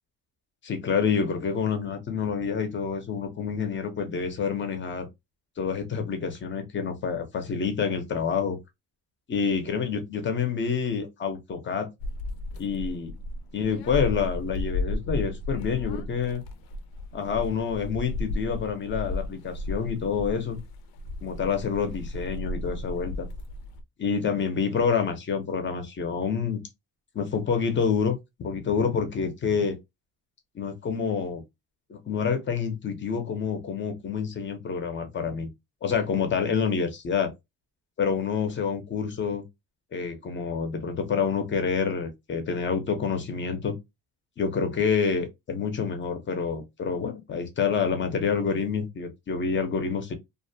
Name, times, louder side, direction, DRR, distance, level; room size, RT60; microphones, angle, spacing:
voice 1, 0.6-5.1 5.6-8.6 9.3-11.9 12.6-13.1 13.5-16.4 17.1-20.6 21.2-23.3 24.0-26.6 27.1-29.8 30.5-31.4 31.9-35.5 35.8-37.3 38.0-39.4 39.9-43.8 44.4-50.1, left 6 dB, 30° left, 0.6 m, -27 dB
sound 1, 12.0-23.8, left 2 dB, 75° left, 0.5 m, -34 dB
2.4 x 2.1 x 2.6 m
cardioid pair, 150°, 37 cm